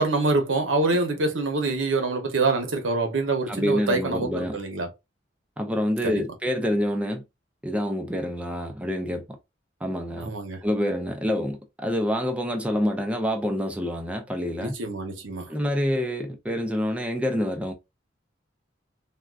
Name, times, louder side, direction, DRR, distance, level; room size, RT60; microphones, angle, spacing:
voice 1, 0.0-4.9 6.0-6.2 10.2-10.6 14.6-15.5, right 3 dB, 85° right, 0.8 m, -25 dB
voice 2, 3.5-4.6 5.6-7.2 7.6-9.2 9.8-10.3 10.6-14.7 15.5-17.7, equal, 5° right, 0.4 m, -27 dB
3.6 x 2.2 x 2.3 m
head